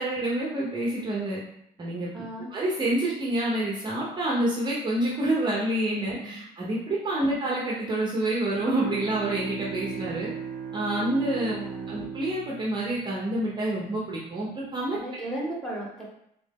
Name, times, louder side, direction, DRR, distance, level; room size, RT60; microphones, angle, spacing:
voice 1, 0.0-1.4 1.8-2.2 2.5-10.3 10.7-11.6 11.9-15.0, right 1 dB, 25° right, -5 dB, 0.8 m, -28 dB
voice 2, 2.1-2.5 6.0-6.3 7.2-7.3 11.4-12.0 14.9-16.0, right 1 dB, 5° left, -5 dB, 1.4 m, -36 dB
Bowed string instrument, 8.3-13.9, right 6 dB, 75° right, 0.5 m, -38 dB
3.6 x 2.6 x 3.6 m, 0.74 s
cardioid pair, 110°, 17 cm